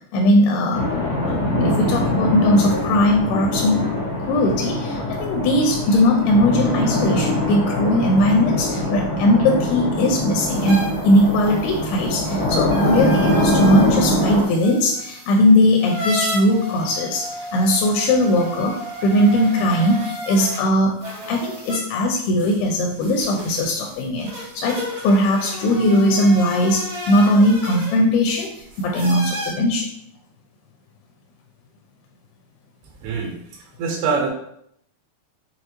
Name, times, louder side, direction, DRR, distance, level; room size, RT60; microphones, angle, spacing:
voice 1, 0.1-0.8 1.2-3.8 4.2-21.0 21.3-28.5 28.8-29.9, left 1 dB, 80° left, 0 dB, 2.3 m, -19 dB
sound 1, 0.7-14.4, left 1 dB, 65° left, 1.2 m, -23 dB
sound 2, 10.3-20.6 21.0-29.5, equal, 60° right, 1.3 m, -33 dB
voice 2, 33.0-34.3, right 5 dB, 85° right, 1 dB, 2.9 m, -25 dB
6.5 x 2.3 x 2.9 m, 0.71 s
omnidirectional pair, 4.6 m